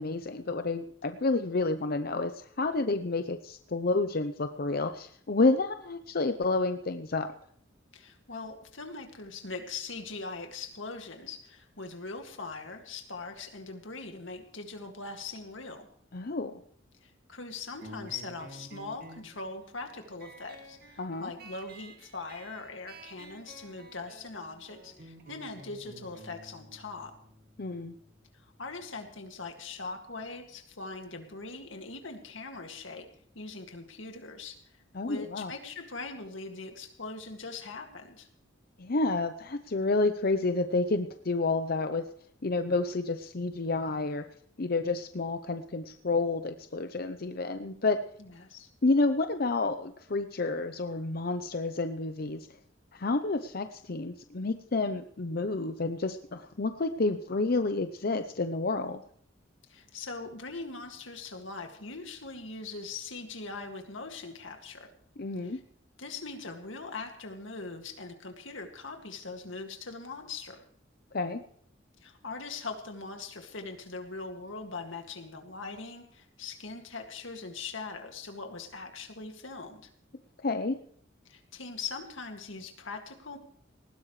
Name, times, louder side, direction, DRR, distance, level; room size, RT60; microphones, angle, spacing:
voice 1, 0.0-7.3 16.1-16.5 21.0-21.3 27.6-27.9 34.9-35.5 38.8-42.0 42.4-44.2 44.6-48.0 48.8-52.5 52.9-59.0 65.2-65.6 71.1-71.4 80.4-80.7, left 3 dB, 50° left, 8 dB, 0.7 m, -29 dB
voice 2, 7.9-15.9 17.0-27.1 28.4-33.1 33.3-34.6 35.0-38.3 48.2-48.7 59.7-64.9 65.4-65.6 66.0-70.6 72.0-79.9 81.3-83.4, left 3 dB, 85° left, 5 dB, 2.2 m, -41 dB
sound 1, 17.8-28.9, right 1 dB, 55° right, 2.1 m, -51 dB
19.5 x 16.0 x 3.2 m, 0.62 s
head